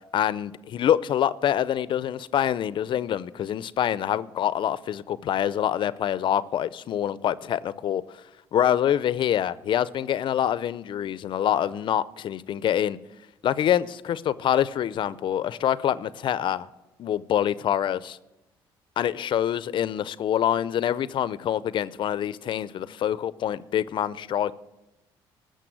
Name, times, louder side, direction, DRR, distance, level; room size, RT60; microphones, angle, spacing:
voice 1, 0.1-8.2 8.5-13.0 13.4-16.7 17.0-18.2 19.0-24.5, left 10 dB, 55° left, 0.5 m, -25 dB
14.0 x 6.6 x 7.8 m
cardioid pair, 85°, 10 cm